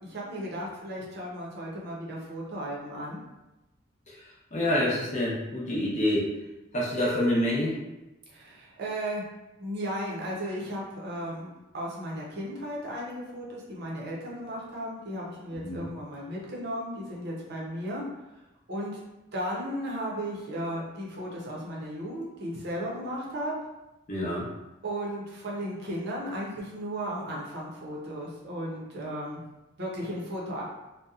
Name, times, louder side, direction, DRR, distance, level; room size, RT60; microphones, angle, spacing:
voice 1, 0.0-3.2 8.3-9.2 9.6-18.0 18.7-19.0 19.3-23.5 24.8-29.4 29.8-30.6, equal, 55° right, -4 dB, 0.6 m, -35 dB
voice 2, 4.1-6.3 6.7-7.8 15.6-15.8 24.1-24.4, left 1 dB, 35° left, -6 dB, 0.7 m, -27 dB
2.7 x 2.1 x 2.3 m, 0.99 s
head